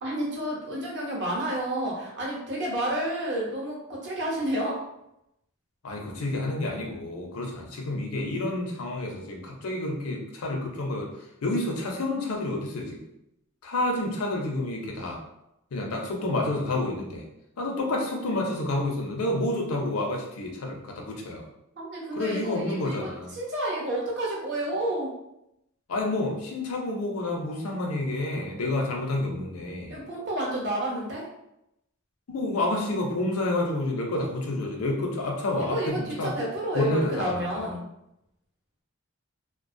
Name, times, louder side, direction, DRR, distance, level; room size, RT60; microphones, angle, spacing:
voice 1, 0.0-4.8 21.8-25.1 29.9-31.3 35.6-37.8, right 1 dB, 55° right, -3 dB, 0.8 m, -30 dB
voice 2, 5.8-11.1 11.4-13.0 13.6-15.2 15.7-17.2 17.6-21.5 22.1-23.3 25.9-30.0 32.3-36.4 36.7-37.7, left 2 dB, 85° left, 1 dB, 0.6 m, -29 dB
2.4 x 2.2 x 2.6 m, 0.84 s
head